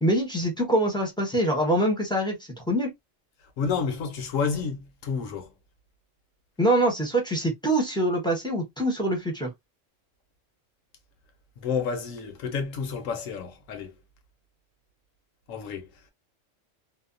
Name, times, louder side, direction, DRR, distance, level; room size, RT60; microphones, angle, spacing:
voice 1, 0.0-2.4 2.7-2.9 6.6-9.5, right 1 dB, 5° left, 0.7 m, -24 dB
voice 2, 3.6-5.5 11.6-14.0 15.5-16.0, left 5 dB, 80° left, 1.1 m, -30 dB
2.7 x 2.1 x 2.4 m
omnidirectional pair, 1.3 m